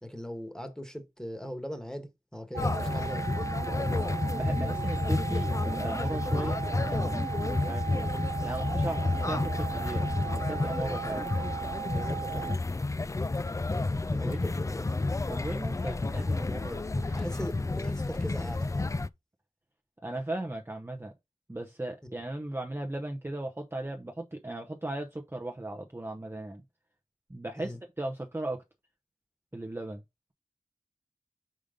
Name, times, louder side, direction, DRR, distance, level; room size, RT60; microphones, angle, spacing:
voice 1, 0.0-3.3 9.0-9.1 11.9-12.5 14.2-15.0 17.1-18.9 27.6-27.8, equal, 5° left, 1.3 m, -40 dB
sound 1, 2.5-12.6, right 10 dB, 80° right, 0.5 m, -37 dB
sound 2, 2.6-19.1, left 3 dB, 25° left, 0.3 m, -30 dB
voice 2, 4.3-7.2 7.6-8.1 8.4-11.3 14.1-14.5 15.3-17.2 20.0-21.1 21.5-26.6 27.3-28.6 29.5-30.0, right 1 dB, 20° right, 0.7 m, -37 dB
5.1 x 5.1 x 3.7 m
wide cardioid pair, 65°, 13 cm